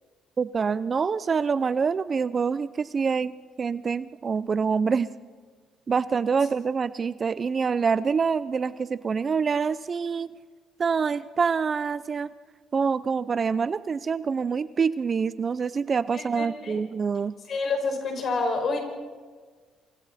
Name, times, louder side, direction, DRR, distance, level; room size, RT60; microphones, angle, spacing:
voice 1, 0.4-3.3 3.6-5.1 5.9-10.3 10.8-12.3 12.7-17.3, right 5 dB, 35° right, 16 dB, 0.5 m, -26 dB
voice 2, 16.1-16.8 17.5-18.8, left 3 dB, 45° left, 3 dB, 5.8 m, -28 dB
28.0 x 25.0 x 4.2 m, 1.5 s
cardioid pair, 105°, 0 cm